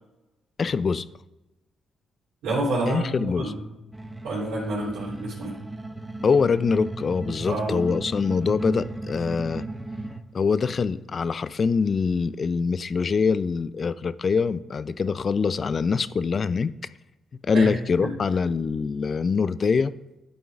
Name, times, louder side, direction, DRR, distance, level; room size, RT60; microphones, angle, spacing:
voice 1, 0.6-1.0 2.9-3.5 6.2-9.7 10.3-16.7 17.5-19.9, left 5 dB, 50° left, 0.4 m, -24 dB
voice 2, 2.4-3.6 4.2-5.6 7.5-7.8 17.5-17.7 18.0-18.1, right 2 dB, 85° right, 3.1 m, -28 dB
sound 1, 3.9-10.2, right 2 dB, 15° right, 1.0 m, -35 dB
11.0 x 8.3 x 2.4 m
supercardioid pair, 55°, 0 cm